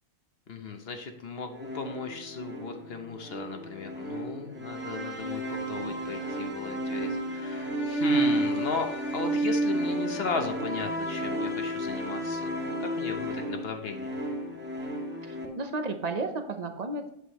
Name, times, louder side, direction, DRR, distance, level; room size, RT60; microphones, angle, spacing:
voice 1, 0.5-12.5 12.8-14.2, left 4 dB, 50° left, 5 dB, 1.0 m, -36 dB
sound 1, 1.5-15.5, right 1 dB, 10° right, 1.6 m, -31 dB
voice 2, 15.3-17.1, right 3 dB, 40° right, 6 dB, 0.7 m, -33 dB
8.1 x 8.1 x 3.0 m, 0.74 s
omnidirectional pair, 1.5 m